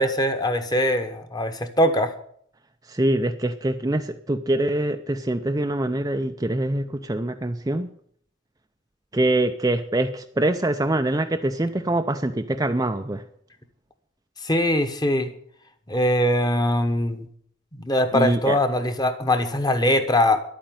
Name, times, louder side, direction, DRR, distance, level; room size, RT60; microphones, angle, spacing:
voice 1, 0.0-2.1 14.4-15.3 15.9-17.3 17.8-20.4, left 1 dB, 20° left, 8 dB, 1.1 m, -22 dB
voice 2, 2.9-7.9 9.1-13.2 18.1-18.6, right 1 dB, 15° right, 6 dB, 0.5 m, -24 dB
11.5 x 8.8 x 9.3 m, 0.64 s
head